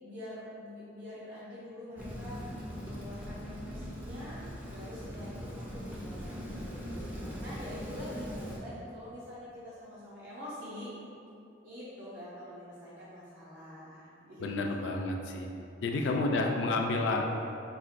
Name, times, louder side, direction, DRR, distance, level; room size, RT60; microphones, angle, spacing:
voice 1, 0.0-10.9 11.6-14.5 15.9-16.1, left 1 dB, 70° right, -9 dB, 0.6 m, -46 dB
Rain, 2.0-8.6, equal, 10° right, 0.3 m, -41 dB
voice 2, 14.4-15.5 15.8-17.2, left 2 dB, 70° left, 3 dB, 0.3 m, -30 dB
4.1 x 2.2 x 2.5 m, 2.6 s
head